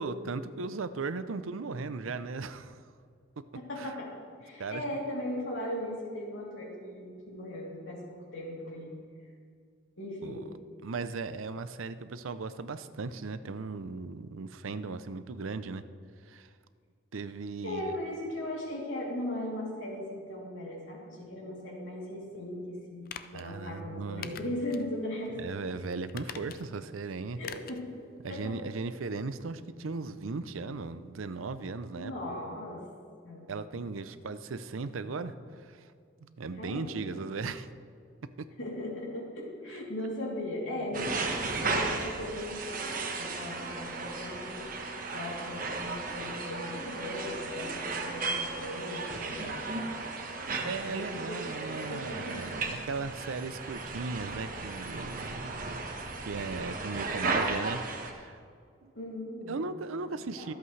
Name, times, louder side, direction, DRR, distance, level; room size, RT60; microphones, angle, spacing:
voice 1, 0.0-2.8 3.8-3.9 4.6-4.8 10.2-10.4 10.8-15.8 16.2-16.5 17.1-17.9 23.3-24.5 25.4-27.4 28.2-32.1 33.5-35.9 36.2-37.7 40.8-41.1 50.6-55.6 56.2-58.4 58.8-58.9 59.5-60.5, right 4 dB, 90° right, 12 dB, 0.6 m, -37 dB
voice 2, 3.5-4.1 4.4-8.9 10.0-10.4 17.6-25.4 27.4-27.9 28.3-28.6 32.0-32.8 33.2-33.5 36.6-37.2 38.6-44.6 45.1-49.6 50.8-52.4 58.9-59.6 60.3-60.5, left 1 dB, 75° left, -3 dB, 3.1 m, -38 dB
sound 1, 23.1-23.5 24.2-24.9 25.3-25.4 26.1-26.8 27.4-27.8 28.2-28.3, left 8 dB, 45° left, 0.4 m, -44 dB
sound 2, 40.9-58.1, right 3 dB, 45° right, 1.2 m, -35 dB
24.0 x 8.1 x 3.3 m, 2.2 s
head